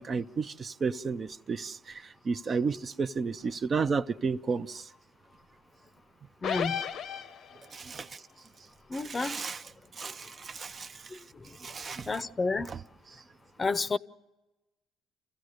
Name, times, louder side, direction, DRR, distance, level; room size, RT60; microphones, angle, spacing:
voice 1, 0.0-4.9 7.7-8.1 8.9-9.6 10.0-11.0 11.6-12.2 12.7-12.8, right 5 dB, 40° right, 0.6 m, -32 dB
sound 1, 6.4-7.8, left 8 dB, 65° left, 0.8 m, -34 dB
voice 2, 6.4-6.8 8.9-9.4 12.1-12.7 13.6-14.0, left 3 dB, 30° left, 0.7 m, -30 dB
27.0 x 16.0 x 6.5 m
supercardioid pair, 75°, 0 cm